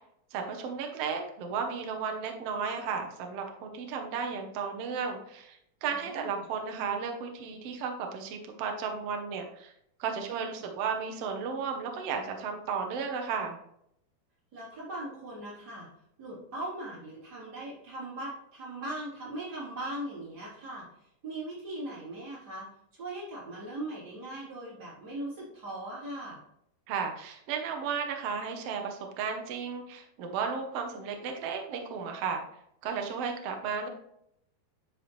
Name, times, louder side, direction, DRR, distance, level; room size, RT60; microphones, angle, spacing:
voice 1, 0.3-9.7 10.0-13.6 26.9-32.4 32.8-33.9, right 6 dB, 75° right, 4 dB, 1.4 m, -34 dB
voice 2, 5.9-6.4 10.3-10.7 14.5-15.9 16.2-22.7 23.0-26.4, right 1 dB, 25° right, -7 dB, 3.5 m, -39 dB
10.0 x 4.9 x 3.1 m, 0.74 s
omnidirectional pair, 4.3 m